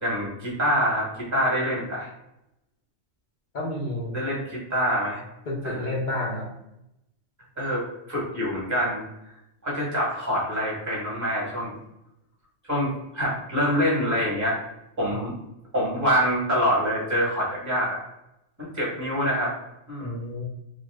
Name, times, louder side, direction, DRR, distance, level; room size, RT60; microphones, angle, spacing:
voice 1, 0.0-2.1 4.1-5.2 5.6-5.9 7.6-9.0 9.6-11.7 12.7-14.6 15.0-15.3 15.7-18.0 18.6-19.5 19.9-20.2, equal, 15° right, -5 dB, 1.0 m, -25 dB
voice 2, 3.5-4.1 5.5-6.5 15.1-15.2 20.0-20.4, left 1 dB, 50° left, -2 dB, 0.7 m, -30 dB
2.7 x 2.3 x 3.3 m, 0.85 s
omnidirectional pair, 1.3 m